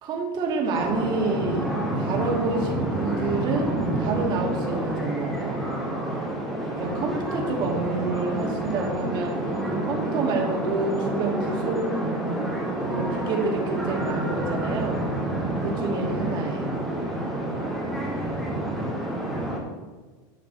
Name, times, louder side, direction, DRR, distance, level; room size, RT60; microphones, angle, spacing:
voice 1, 0.0-5.6 6.8-11.8 12.8-15.1 15.6-16.8, right 3 dB, 40° right, 1 dB, 2.4 m, -28 dB
sound 1, 0.7-19.6, right 1 dB, ahead, 2.9 m, -28 dB
12.0 x 7.5 x 4.3 m, 1.4 s
supercardioid pair, 150°, 12 cm